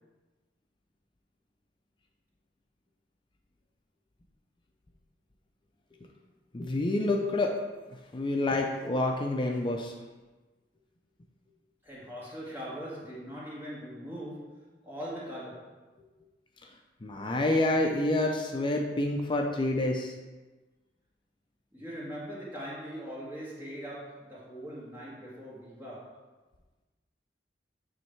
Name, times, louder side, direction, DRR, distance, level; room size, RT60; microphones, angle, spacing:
voice 1, 6.5-7.6 8.1-9.9 17.0-20.1, left 2 dB, 30° left, 2 dB, 0.5 m, -28 dB
voice 2, 11.8-15.8 21.7-26.2, equal, 15° right, -7 dB, 2.0 m, -41 dB
9.0 x 3.2 x 4.5 m, 1.2 s
head